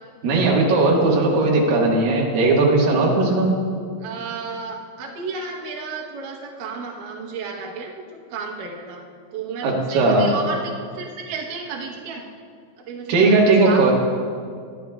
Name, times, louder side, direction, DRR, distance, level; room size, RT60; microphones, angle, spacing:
voice 1, 0.2-3.5 9.6-10.3 13.1-13.9, right 3 dB, 60° right, -3 dB, 2.8 m, -17 dB
voice 2, 4.0-9.0 9.3-12.2 12.9-13.3 13.6-13.9, right 4 dB, 85° right, -1 dB, 1.8 m, -32 dB
24.0 x 9.8 x 2.3 m, 2.2 s
omnidirectional pair, 5.5 m